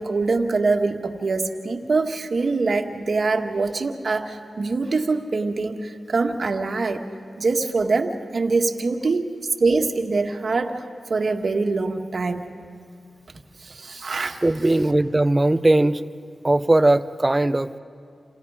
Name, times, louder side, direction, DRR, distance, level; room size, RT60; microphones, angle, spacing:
voice 1, 0.0-7.1 7.4-9.3 9.6-10.8 11.1-12.5 13.6-14.4, right 3 dB, 65° right, 4 dB, 1.8 m, -24 dB
voice 2, 14.4-16.1 16.4-17.8, right 2 dB, 25° right, 12 dB, 1.0 m, -19 dB
29.5 x 27.5 x 5.0 m, 2.3 s
cardioid pair, 40°, 0 cm